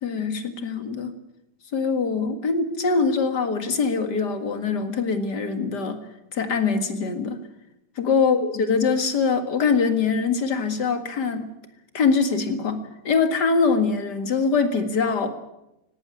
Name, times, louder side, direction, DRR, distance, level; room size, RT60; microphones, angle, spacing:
voice 1, 0.0-1.1 1.7-6.0 6.3-7.4 8.0-11.5 11.9-15.3, left 5 dB, 65° left, 8 dB, 2.5 m, -23 dB
18.0 x 17.5 x 9.8 m, 0.89 s
omnidirectional pair, 1.9 m